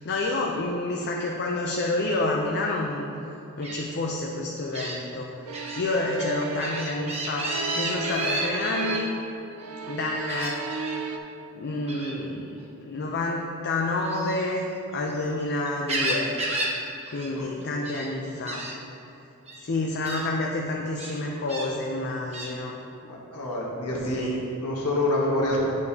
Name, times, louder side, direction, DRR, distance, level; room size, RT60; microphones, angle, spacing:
voice 1, 0.0-3.1 3.6-5.3 5.8-9.1 9.9-10.7 11.5-14.6 14.9-16.3 17.1-18.6 19.6-22.7 24.1-24.4, left 2 dB, 50° left, -1 dB, 0.5 m, -29 dB
Gull seagull, 3.6-3.8 4.7-5.0 5.5-5.8 6.2-9.0 10.3-11.0 11.9-12.2 14.0-15.3 15.6-16.8 17.0-17.3 17.6-18.1 18.5-18.7 19.5-19.6 20.0-20.2 21.0-21.7 22.3-22.5, right 2 dB, 30° right, 1.0 m, -32 dB
sound 1, 5.5-9.3 9.6-11.2, right 3 dB, 70° right, 0.5 m, -34 dB
voice 2, 23.0-24.3 24.6-25.6, left 1 dB, 90° left, -4 dB, 1.2 m, -27 dB
8.7 x 6.4 x 2.8 m, 2.9 s
head